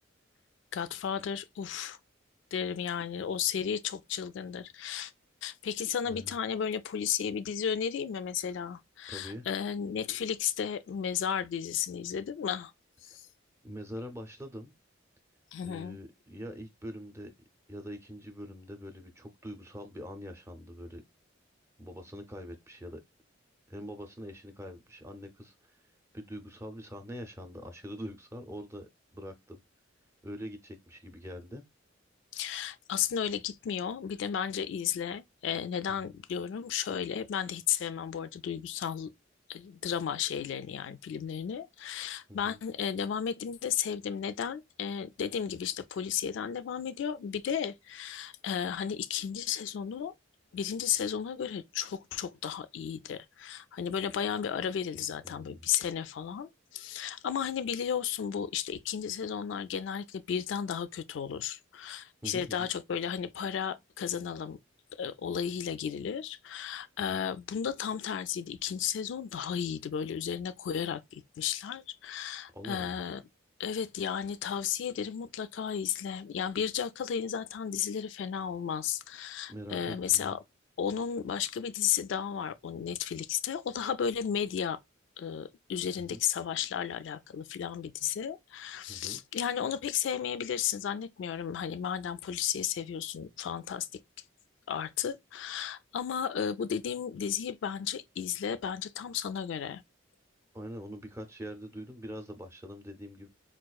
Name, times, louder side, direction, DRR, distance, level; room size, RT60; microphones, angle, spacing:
voice 1, 0.7-2.0 2.5-5.1 5.4-12.7 13.0-13.3 15.5-16.0 32.3-39.1 39.5-50.1 50.5-64.6 65.0-73.2 73.6-80.4 80.8-84.8 85.2-94.0 94.7-99.8, left 8 dB, 65° left, 0.3 m, -34 dB
voice 2, 9.1-9.5 13.1-13.2 13.6-14.7 15.6-17.3 17.7-21.0 21.8-23.0 23.7-25.8 26.1-29.6 30.2-31.6 35.9-36.2 42.3-42.6 55.0-55.6 62.2-62.7 72.5-73.0 79.5-80.4 86.0-86.2 88.9-89.2 100.5-103.3, equal, 15° right, 0.6 m, -44 dB
4.6 x 2.4 x 2.2 m
head